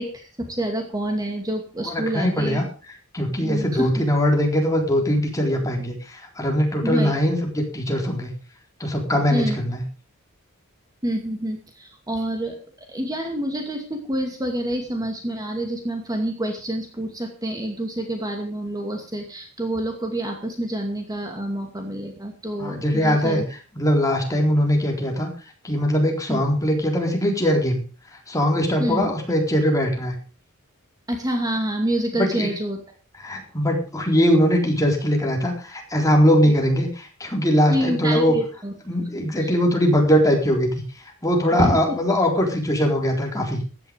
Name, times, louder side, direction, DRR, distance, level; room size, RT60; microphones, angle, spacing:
voice 1, 0.0-2.6 3.4-3.9 6.8-7.2 9.3-9.6 11.0-12.6 12.9-23.4 26.3-26.4 28.8-29.1 31.1-32.8 37.7-38.7 39.4-39.6 41.6-41.8, right 1 dB, 20° right, 3 dB, 2.4 m, -27 dB
voice 2, 1.8-2.7 3.1-8.3 8.8-9.8 22.6-23.4 23.8-25.3 25.6-27.8 28.1-30.2 32.2-32.5 33.2-38.4 38.9-40.8 41.2-43.6, equal, 15° left, 1 dB, 3.9 m, -21 dB
15.5 x 11.0 x 5.2 m, 0.37 s
head